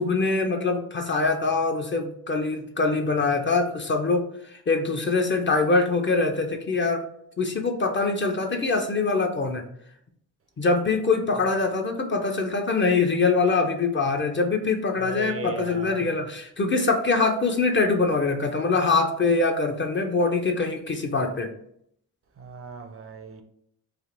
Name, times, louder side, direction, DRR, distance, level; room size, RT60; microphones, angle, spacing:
voice 1, 0.0-7.0 7.4-9.6 10.6-21.5, left 3 dB, 30° left, 0.5 m, -24 dB
voice 2, 15.0-16.1 22.4-23.4, right 4 dB, 35° right, 0.5 m, -37 dB
3.3 x 2.5 x 2.5 m
hypercardioid pair, 45°, 42 cm